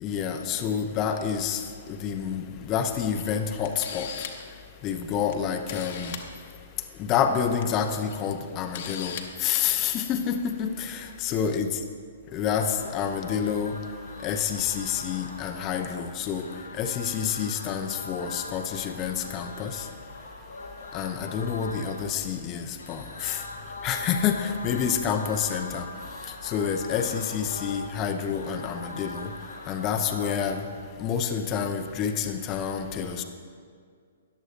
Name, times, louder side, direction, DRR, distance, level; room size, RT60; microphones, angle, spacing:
voice 1, 0.0-1.6 2.0-4.1 4.8-6.1 7.1-9.2 9.4-11.7 12.3-13.7 14.2-16.5 16.8-19.8 20.9-23.4 23.8-25.8 26.4-29.3 29.7-30.6 31.0-33.2, left 7 dB, 30° left, 6 dB, 0.6 m, -28 dB
Camera, 3.1-3.2 3.6-4.5 5.3-5.4 5.7-6.2 7.4-7.6 8.1-8.2 8.7-9.2 9.5-9.7, left 9 dB, 50° left, 1.0 m, -37 dB
sound 1, 12.5-30.7, left 2 dB, 85° left, 1.8 m, -42 dB
14.0 x 10.0 x 2.5 m, 2.1 s
figure-of-eight pair, 120°, 0 cm